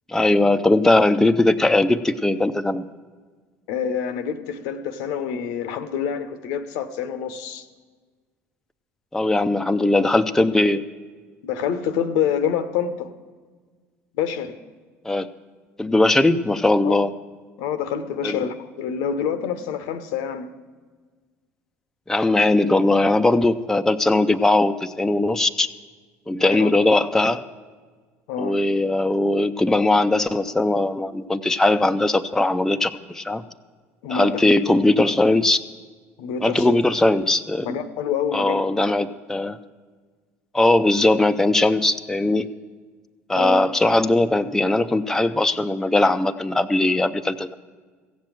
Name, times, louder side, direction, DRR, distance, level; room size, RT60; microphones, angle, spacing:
voice 1, 0.1-2.9 9.1-10.8 15.0-15.3 15.8-17.1 18.2-18.4 22.1-25.7 26.3-27.4 28.4-33.4 34.1-35.6 36.4-37.7 38.3-39.6 40.5-42.5 43.3-47.5, left 2 dB, 5° left, 0.5 m, -19 dB
voice 2, 3.7-7.7 11.4-13.1 14.2-14.6 16.8-16.9 17.6-20.5 26.4-26.7 28.3-28.6 34.0-34.4 36.2-36.7 37.6-38.6 43.4-43.6, left 8 dB, 65° left, 0.8 m, -27 dB
15.5 x 7.4 x 7.6 m
figure-of-eight pair, 65°, 7 cm